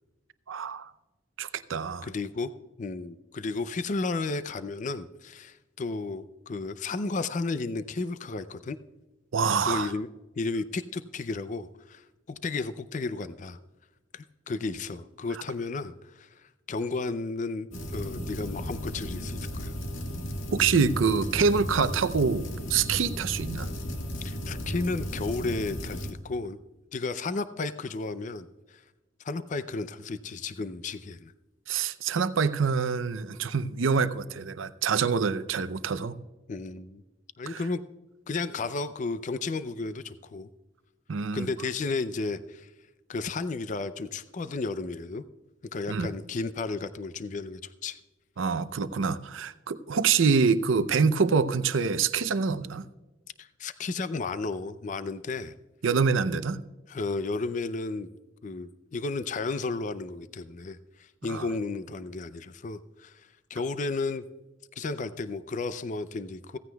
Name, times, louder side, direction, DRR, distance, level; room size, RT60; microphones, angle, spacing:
voice 1, 0.5-0.9 1.4-2.1 9.3-9.9 20.5-23.7 31.7-36.2 37.5-37.6 41.1-41.5 45.9-46.1 48.4-52.8 55.8-56.6 61.3-61.4, right 5 dB, 85° right, 13 dB, 0.6 m, -26 dB
voice 2, 2.0-2.5 2.8-8.8 9.6-10.1 10.4-13.6 14.1-19.7 24.2-26.6 26.9-28.8 29.2-31.3 36.5-37.0 37.4-37.8 38.3-40.5 41.3-42.7 43.1-45.2 45.7-48.0 53.4-55.5 56.9-58.1 58.4-64.2 64.8-66.6, left 3 dB, 40° left, 13 dB, 0.4 m, -33 dB
sound 1, 17.7-26.1, equal, 90° left, 1.7 m, -35 dB
16.0 x 15.5 x 2.3 m, 1.1 s
head